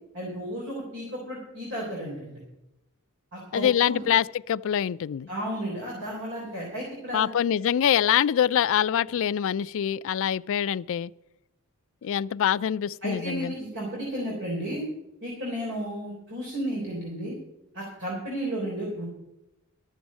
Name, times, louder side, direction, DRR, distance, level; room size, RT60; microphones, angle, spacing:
voice 1, 0.1-2.4 3.3-4.1 5.3-7.3 13.0-14.8 15.2-17.4 17.7-19.1, equal, 60° right, 3.7 m, -33 dB
voice 2, 3.5-5.3 7.1-11.1 12.0-13.5, left 9 dB, 60° left, 0.3 m, -24 dB
13.0 x 7.0 x 7.4 m
head